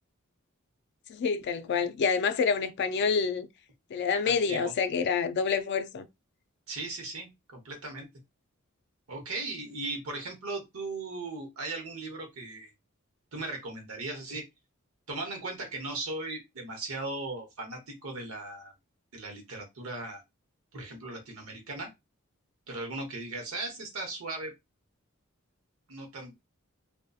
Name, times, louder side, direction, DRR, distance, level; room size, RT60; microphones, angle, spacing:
voice 1, 1.1-3.5 3.9-6.1, left 5 dB, 55° left, 0.3 m, -27 dB
voice 2, 4.2-4.7 6.7-8.1 9.1-12.7 13.3-14.4 15.1-18.7 19.1-20.2 20.7-21.9 22.7-24.5 25.9-26.4, right 2 dB, 80° right, 0.9 m, -38 dB
2.7 x 2.2 x 2.3 m
head